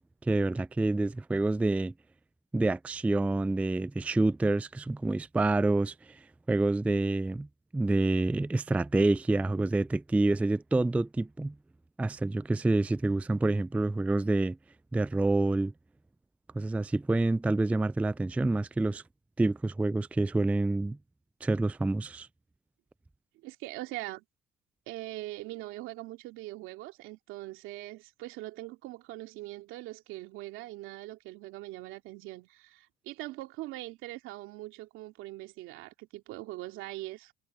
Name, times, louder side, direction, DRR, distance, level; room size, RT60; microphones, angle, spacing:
voice 1, 0.2-1.9 2.5-7.5 7.7-11.5 12.0-14.6 14.9-15.7 16.5-19.0 19.4-21.0 21.4-22.3, right 2 dB, 5° right, 0.4 m, -27 dB
voice 2, 23.4-24.2 24.9-37.3, right 18 dB, 75° right, 2.7 m, -42 dB
supercardioid pair, 90°, 21 cm